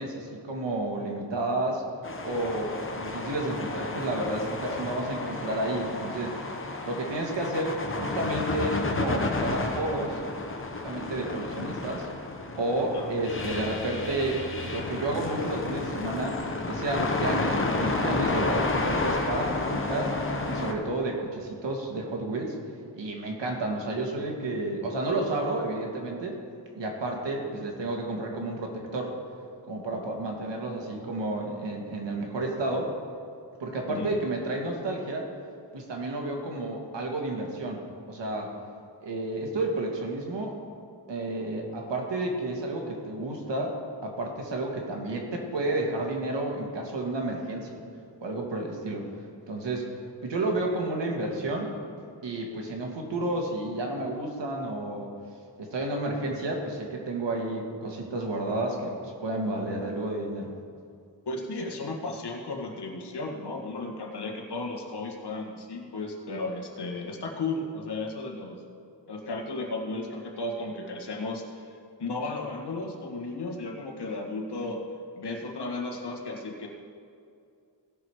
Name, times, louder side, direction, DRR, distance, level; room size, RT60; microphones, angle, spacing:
voice 1, 0.0-1.8 2.2-6.3 6.8-10.2 10.8-12.1 12.6-16.4 16.7-20.1 20.5-22.6 23.0-26.4 26.8-29.1 29.7-32.9 33.6-35.3 35.7-38.5 39.0-40.6 41.1-47.8 48.2-49.1 49.5-49.9 50.2-51.7 52.2-55.1 55.6-60.5, right 2 dB, 80° right, 1 dB, 1.8 m, -31 dB
sound 1, 2.0-20.7, left 3 dB, 30° left, 1.1 m, -31 dB
voice 2, 12.8-13.1 33.9-34.1 61.3-68.6 69.1-74.9 75.2-76.7, left 2 dB, 65° left, 1 dB, 1.7 m, -34 dB
17.0 x 6.0 x 4.8 m, 2.4 s
wide cardioid pair, 105°, 43 cm